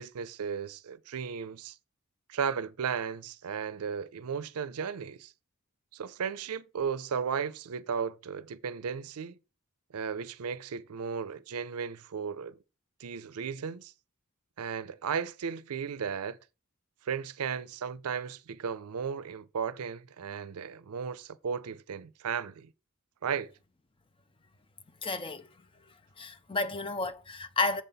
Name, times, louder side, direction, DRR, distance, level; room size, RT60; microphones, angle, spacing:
voice 1, 0.0-1.8 2.3-5.3 5.9-9.4 9.9-12.6 13.0-13.9 14.6-16.4 17.0-22.7 23.2-23.5, right 6 dB, 85° right, 0.5 m, -35 dB
voice 2, 25.0-25.5 26.2-27.8, left 3 dB, 25° left, 0.6 m, -31 dB
7.3 x 4.0 x 5.6 m
head